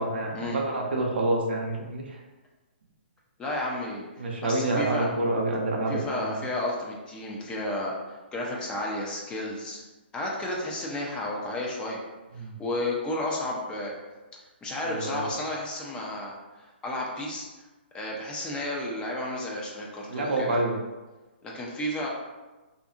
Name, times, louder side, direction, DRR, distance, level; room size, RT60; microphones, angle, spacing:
voice 1, 0.0-2.2 4.2-6.4 12.3-12.6 14.8-15.2 20.1-20.8, right 2 dB, 70° right, 1 dB, 0.5 m, -28 dB
voice 2, 3.4-4.1 4.4-5.1 5.9-9.8 10.1-12.0 12.6-13.9 14.6-17.5 17.9-20.6 21.4-22.1, left 1 dB, 15° left, -3 dB, 0.5 m, -32 dB
2.6 x 2.5 x 2.4 m, 1.2 s
hypercardioid pair, 135°, 6 cm